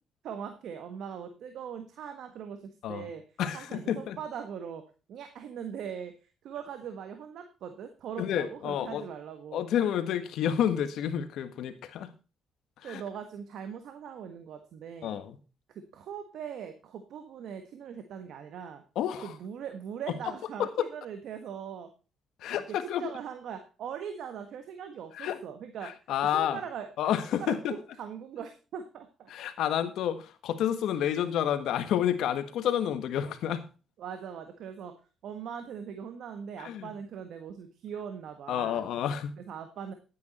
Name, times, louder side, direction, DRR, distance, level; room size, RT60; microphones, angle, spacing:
voice 1, 0.2-3.2 3.5-9.6 12.8-15.2 15.7-18.8 19.2-21.9 22.7-25.9 26.3-26.9 27.4-29.3 34.0-34.9 35.2-38.9 39.5-39.9, right 7 dB, 75° right, 7 dB, 1.5 m, -41 dB
voice 2, 3.4-4.2 8.2-9.0 9.5-12.1 12.8-13.0 15.0-15.4 18.9-19.4 20.6-20.7 22.4-23.0 25.1-25.4 25.8-26.6 27.0-27.8 29.3-33.7 36.6-36.9 38.5-39.3, left 10 dB, 80° left, 10 dB, 1.5 m, -30 dB
11.0 x 9.5 x 4.3 m, 0.33 s
cardioid pair, 90°, 0 cm